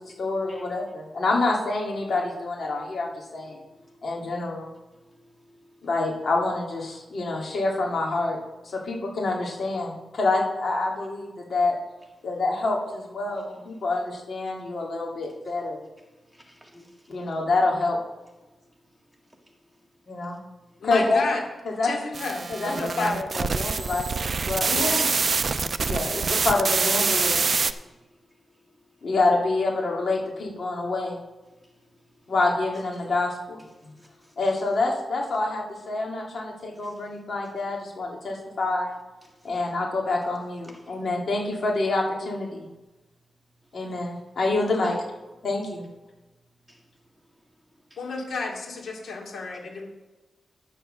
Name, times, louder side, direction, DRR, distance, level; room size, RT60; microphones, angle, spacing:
voice 1, 0.2-3.6 4.0-4.7 5.8-8.4 8.6-11.8 12.2-15.8 17.1-18.0 20.1-20.4 20.8-21.2 21.6-21.9 22.5-22.7 23.0-24.9 25.9-27.6 29.0-31.2 32.3-33.9 34.4-38.9 39.4-42.7 43.7-45.0 45.4-45.8, left 2 dB, 50° left, 2.6 m, -27 dB
voice 2, 16.3-17.2 19.4-19.6 34.0-34.3 36.7-36.9 46.7-46.8, equal, ahead, 2.0 m, -52 dB
voice 3, 20.8-21.4 21.8-23.2 24.5-25.3 48.0-49.9, left 3 dB, 70° left, 2.6 m, -32 dB
sound 1, 22.1-27.7, right 4 dB, 40° right, 0.4 m, -25 dB
10.0 x 6.7 x 6.6 m
wide cardioid pair, 150°, 0 cm